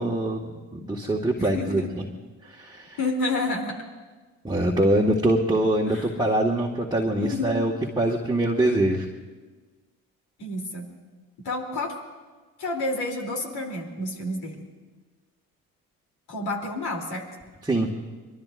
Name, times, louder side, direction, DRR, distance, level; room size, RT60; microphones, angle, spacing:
voice 1, 0.0-2.0 2.4-3.0 4.4-9.1 17.6-17.9, right 1 dB, 10° right, -2 dB, 1.9 m, -24 dB
voice 2, 1.4-1.9 3.0-3.8 5.9-6.1 7.2-7.6 10.4-10.9 11.4-11.9 12.6-14.6 16.3-17.3, left 2 dB, 60° left, 1 dB, 3.5 m, -29 dB
25.0 x 21.5 x 2.6 m, 1.3 s
hypercardioid pair, 50°, 42 cm